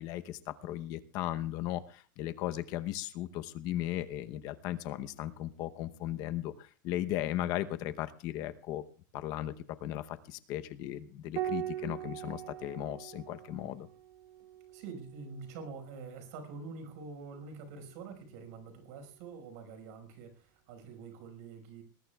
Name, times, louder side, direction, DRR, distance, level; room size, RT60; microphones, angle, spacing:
voice 1, 0.0-8.8 9.1-13.9, left 13 dB, 40° left, 11 dB, 0.9 m, -37 dB
Piano, 11.4-16.2 17.8-18.7, right 12 dB, 35° right, 1.1 m, -42 dB
voice 2, 14.7-21.8, right 4 dB, 55° right, 5 dB, 5.2 m, -46 dB
20.0 x 19.0 x 2.4 m, 0.41 s
supercardioid pair, 165°, 10 cm